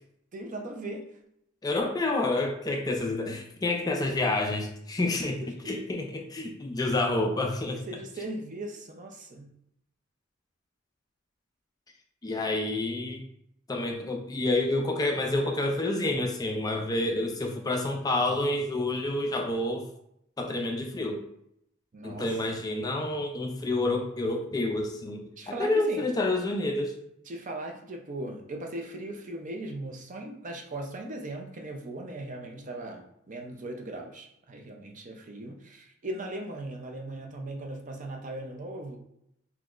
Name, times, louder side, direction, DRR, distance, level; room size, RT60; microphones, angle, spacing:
voice 1, 0.3-1.0 5.0-5.1 5.4-5.9 7.9-9.5 21.9-22.6 25.4-26.1 27.3-39.0, right 1 dB, 40° right, 2 dB, 0.5 m, -39 dB
voice 2, 1.6-7.8 12.2-13.2 13.7-19.9 20.4-21.2 22.0-26.9, left 2 dB, 20° left, 2 dB, 0.3 m, -28 dB
3.9 x 2.9 x 2.4 m, 0.75 s
head